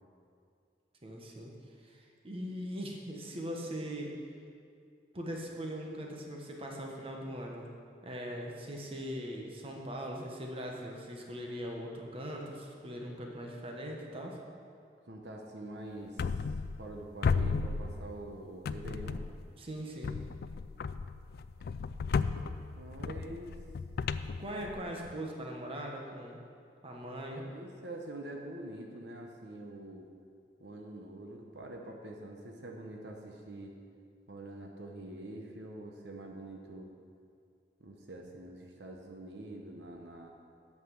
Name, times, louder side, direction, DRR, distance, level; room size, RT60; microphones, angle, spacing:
voice 1, 1.0-1.5 1.8-4.1 5.1-7.7 8.0-14.4 19.6-20.2 24.4-26.4 26.8-27.4, equal, 35° right, 0 dB, 1.2 m, -40 dB
voice 2, 15.0-16.3 16.8-19.2 22.3-23.6 27.4-30.1 30.6-33.8 34.3-36.9 37.8-40.3, right 1 dB, 70° right, 1 dB, 0.9 m, -45 dB
sound 1, 16.2-17.0 17.2-18.3 18.6-19.5 20.0-25.1, left 5 dB, 60° left, 0.3 m, -34 dB
8.6 x 5.9 x 7.4 m, 2.3 s
head